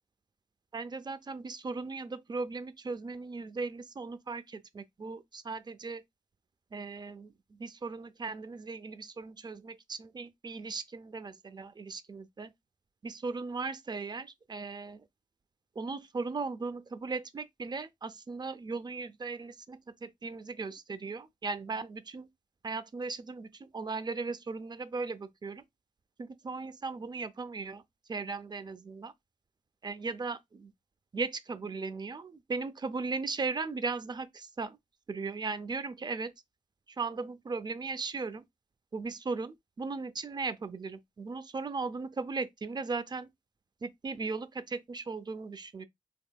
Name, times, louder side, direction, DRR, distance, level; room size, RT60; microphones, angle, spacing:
voice 1, 0.7-6.0 6.7-12.5 13.0-15.0 15.8-22.3 22.6-25.6 26.2-27.8 28.1-29.1 29.8-30.7 31.1-34.8 35.1-36.3 36.9-38.4 38.9-43.3 43.8-45.8, right 4 dB, 35° right, 0.4 m, -37 dB
3.5 x 3.2 x 2.3 m
wide cardioid pair, 80°, 13 cm